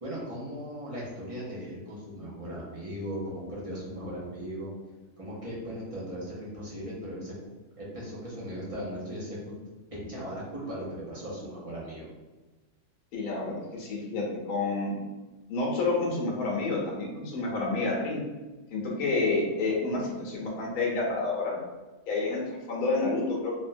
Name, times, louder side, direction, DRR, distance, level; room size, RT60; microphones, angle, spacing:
voice 1, 0.0-4.7 5.2-7.3 7.8-9.4 9.9-12.1, equal, 40° right, -7 dB, 0.5 m, -38 dB
voice 2, 13.1-15.0 15.5-18.2 18.7-21.6 22.1-23.6, left 3 dB, 80° left, -3 dB, 1.2 m, -29 dB
3.4 x 2.1 x 2.6 m, 1.2 s
omnidirectional pair, 1.5 m